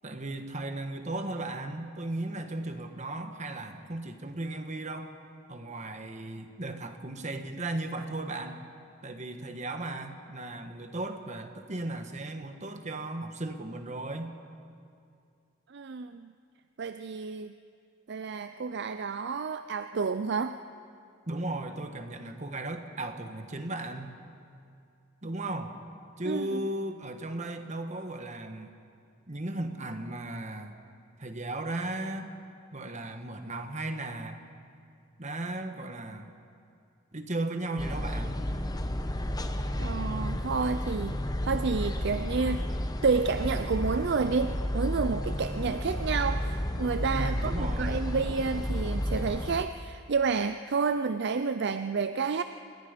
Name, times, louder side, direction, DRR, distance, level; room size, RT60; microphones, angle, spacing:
voice 1, 0.0-5.1 5.5-8.6 9.0-14.3 21.3-24.2 25.2-25.8 26.2-28.7 29.3-30.8 31.2-32.3 32.7-34.4 35.2-36.4 37.1-38.4 47.1-48.1, right 2 dB, 35° right, 6 dB, 1.4 m, -36 dB
voice 2, 15.7-16.3 16.8-17.5 18.1-20.6 26.2-26.7 39.8-42.7 43.0-52.4, right 4 dB, 55° right, 10 dB, 0.5 m, -30 dB
sound 1, 37.8-49.6, left 1 dB, 20° left, 0.9 m, -32 dB
27.5 x 20.0 x 5.2 m, 2.4 s
head